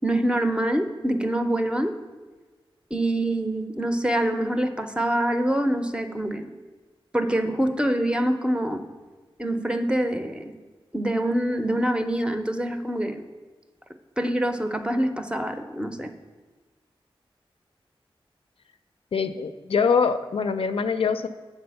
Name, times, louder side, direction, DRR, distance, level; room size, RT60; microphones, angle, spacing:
voice 1, 0.0-2.0 2.9-6.5 7.1-8.8 9.4-10.5 10.9-13.2 14.2-16.1, right 1 dB, 10° right, 7 dB, 0.5 m, -25 dB
voice 2, 19.1-21.3, left 5 dB, 80° left, 9 dB, 0.4 m, -23 dB
7.7 x 4.1 x 6.9 m, 1.3 s
wide cardioid pair, 105°, 10 cm